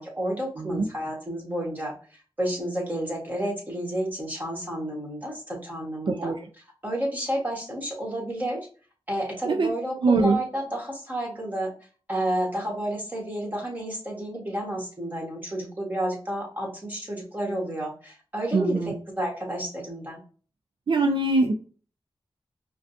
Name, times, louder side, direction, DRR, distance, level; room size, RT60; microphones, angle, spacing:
voice 1, 0.0-1.9 2.4-6.3 6.8-8.6 9.1-11.7 12.1-18.8 19.2-20.2, right 1 dB, 20° right, -1 dB, 1.7 m, -30 dB
voice 2, 0.6-0.9 6.1-6.4 9.4-9.7 10.0-10.4 18.5-19.0 20.9-21.5, right 3 dB, 60° right, 4 dB, 0.5 m, -22 dB
4.9 x 2.3 x 2.7 m, 0.39 s
cardioid pair, 65°, 9 cm